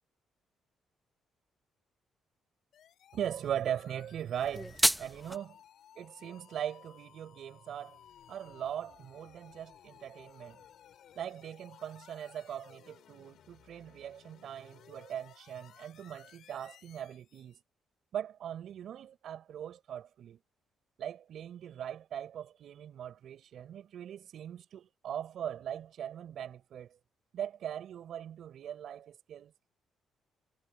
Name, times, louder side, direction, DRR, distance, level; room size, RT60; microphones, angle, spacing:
sound 1, 2.7-17.6, left 10 dB, 70° left, 4.4 m, -58 dB
voice 1, 3.1-5.6 5.9-8.0 8.3-10.6 11.1-17.6 18.1-20.4 21.0-27.0 27.3-29.7, right 9 dB, 70° right, 4.9 m, -40 dB
sound 2, 4.4-5.4, equal, ahead, 0.8 m, -30 dB
cardioid pair, 90°, 0 cm